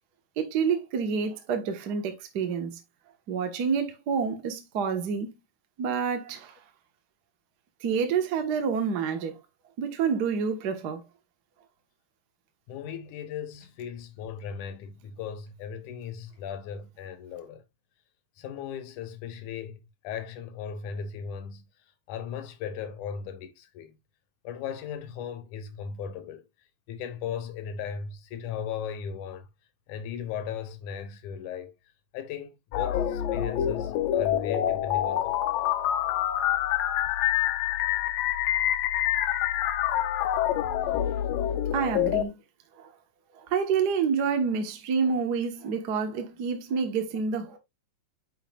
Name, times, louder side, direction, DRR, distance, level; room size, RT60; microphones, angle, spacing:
voice 1, 0.4-2.8 3.3-5.3 5.8-6.6 7.8-9.4 9.8-11.0 41.7-42.3 42.8-42.9 43.4-47.6, right 6 dB, 75° right, 0.9 m, -28 dB
voice 2, 12.7-17.6 18.4-21.7 22.1-24.0 24.4-26.5 26.9-29.5 29.9-31.7 32.1-35.5 40.8-41.6, left 7 dB, 70° left, 2.4 m, -37 dB
sound 1, 32.7-42.2, left 11 dB, 90° left, 2.4 m, -26 dB
9.2 x 5.7 x 2.3 m
omnidirectional pair, 3.9 m